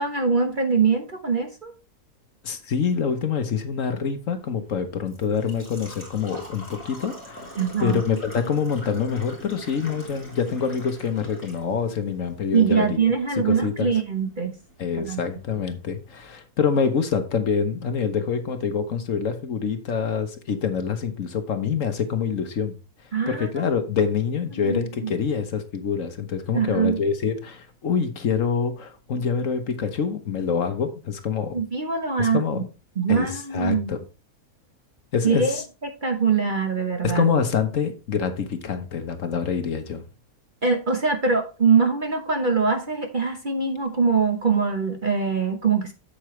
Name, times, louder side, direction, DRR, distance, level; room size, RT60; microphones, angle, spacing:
voice 1, 0.0-1.7 7.6-8.0 12.5-14.6 15.0-15.2 23.1-23.5 24.5-25.1 26.5-27.0 31.5-32.6 33.0-33.9 35.2-35.6 36.0-37.2 40.6-45.9, right 5 dB, 35° right, 1.0 m, -23 dB
voice 2, 2.4-7.5 7.8-13.0 13.4-13.9 14.8-22.7 23.3-31.6 32.2-32.7 33.1-34.0 35.1-35.6 37.0-40.0, left 6 dB, 55° left, 1.3 m, -26 dB
Engine / Trickle dribble / Fill (with liquid), 4.4-16.3, equal, 5° left, 3.4 m, -44 dB
8.4 x 7.7 x 3.1 m
omnidirectional pair, 1.7 m